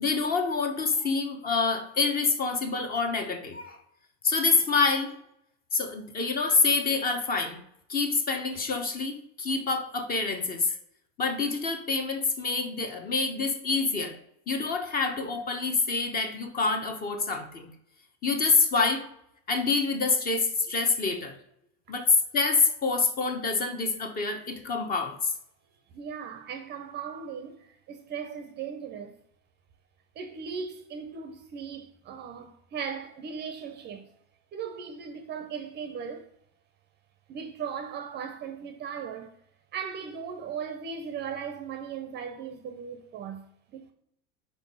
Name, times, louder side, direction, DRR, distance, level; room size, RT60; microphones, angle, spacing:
voice 1, 0.0-3.8 4.2-5.1 5.7-7.6 7.9-10.8 11.2-14.2 14.5-17.7 18.2-19.0 19.5-21.4 21.9-25.3, left 4 dB, 25° left, 0.9 m, -26 dB
voice 2, 25.9-29.1 30.2-34.2 34.5-36.3 37.3-39.3 39.7-43.5 43.7-43.9, right 6 dB, 30° right, 0.6 m, -38 dB
4.7 x 4.5 x 5.4 m
supercardioid pair, 150°, 34 cm